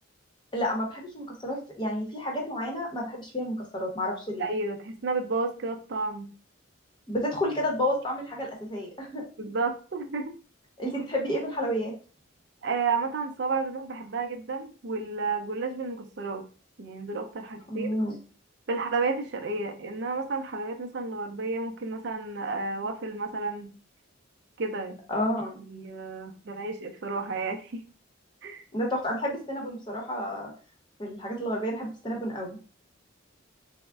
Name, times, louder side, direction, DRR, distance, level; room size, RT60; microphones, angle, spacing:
voice 1, 0.5-4.5 7.1-9.2 10.8-11.9 17.7-18.2 25.1-25.6 28.7-30.5 31.0-32.6, equal, 20° left, -1 dB, 0.8 m, -30 dB
voice 2, 4.4-6.3 9.4-10.3 12.6-16.4 16.8-18.0 18.7-23.7 24.6-25.0 25.7-27.8 28.4-28.6, right 4 dB, 55° right, 4 dB, 0.5 m, -31 dB
3.5 x 2.0 x 3.4 m, 0.38 s
head